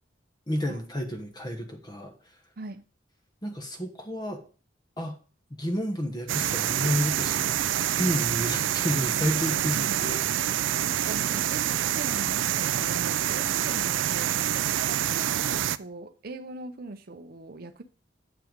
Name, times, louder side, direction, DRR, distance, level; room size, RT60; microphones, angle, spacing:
voice 1, 0.5-2.1 3.4-4.4 5.0-5.1 5.6-7.5 7.9-10.6 11.0-11.2, equal, 20° left, 1.1 m, -31 dB
sound 1, 6.3-15.8, right 11 dB, 90° right, 0.4 m, -27 dB
voice 2, 9.6-10.0 10.8-17.8, right 2 dB, 55° right, 0.7 m, -41 dB
7.7 x 5.6 x 5.2 m
head